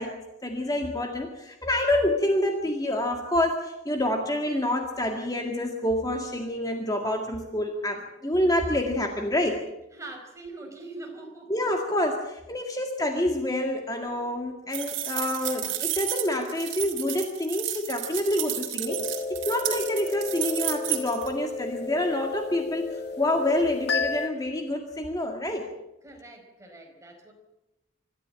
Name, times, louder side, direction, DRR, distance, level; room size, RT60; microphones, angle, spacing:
voice 1, 0.0-9.7 11.5-25.7, left 1 dB, 20° left, 3 dB, 2.0 m, -27 dB
voice 2, 9.9-11.6 26.0-27.3, right 2 dB, 15° right, 1 dB, 4.8 m, -43 dB
sound 1, 14.7-21.3, right 13 dB, 75° right, 3.1 m, -32 dB
sound 2, 18.9-24.3, left 4 dB, 55° left, 1.5 m, -32 dB
25.5 x 14.0 x 8.9 m, 0.93 s
head